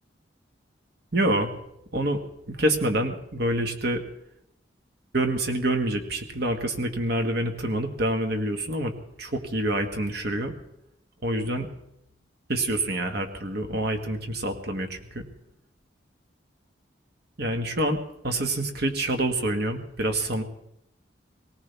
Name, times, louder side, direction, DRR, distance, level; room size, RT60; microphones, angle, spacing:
voice 1, 1.1-1.5 1.9-2.2 2.5-4.0 5.1-8.9 9.2-10.5 11.2-11.7 12.5-15.2 17.4-18.0 18.2-20.4, right 1 dB, 60° right, 5 dB, 1.8 m, -26 dB
19.0 x 18.0 x 3.5 m, 0.80 s
head